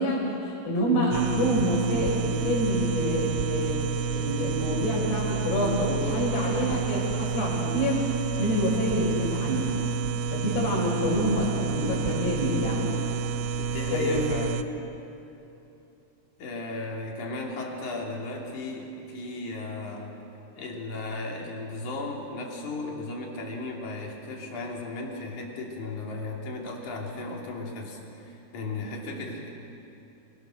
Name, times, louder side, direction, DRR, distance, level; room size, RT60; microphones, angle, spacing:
voice 1, 0.0-3.8 4.1-8.1 8.4-9.8 10.3-13.0 13.9-14.2, equal, 75° left, -3 dB, 8.0 m, -27 dB
sound 1, 1.1-14.6, right 6 dB, 85° right, 2.8 m, -30 dB
voice 2, 13.6-14.7 16.4-20.2 20.5-29.5, left 2 dB, 50° left, -1 dB, 4.2 m, -35 dB
28.0 x 22.5 x 6.6 m, 2.9 s
omnidirectional pair, 4.8 m